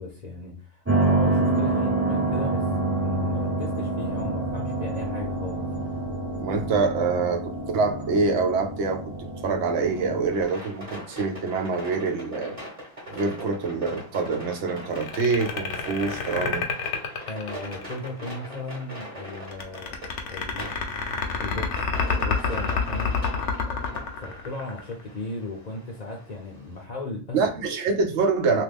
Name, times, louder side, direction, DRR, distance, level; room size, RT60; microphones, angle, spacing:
voice 1, 0.0-5.7 17.3-20.7 21.4-23.2 23.7-27.4, left 2 dB, 45° left, 0.6 m, -36 dB
sound 1, 0.9-10.3, right 2 dB, 15° right, 0.6 m, -27 dB
voice 2, 6.4-12.6 13.1-16.7 27.3-28.6, right 4 dB, 70° right, 0.9 m, -25 dB
sound 2, 10.3-26.8, equal, 30° right, 1.1 m, -41 dB
sound 3, 14.9-18.1 19.5-25.0, left 5 dB, 75° left, 0.9 m, -27 dB
2.9 x 2.4 x 3.4 m
omnidirectional pair, 1.2 m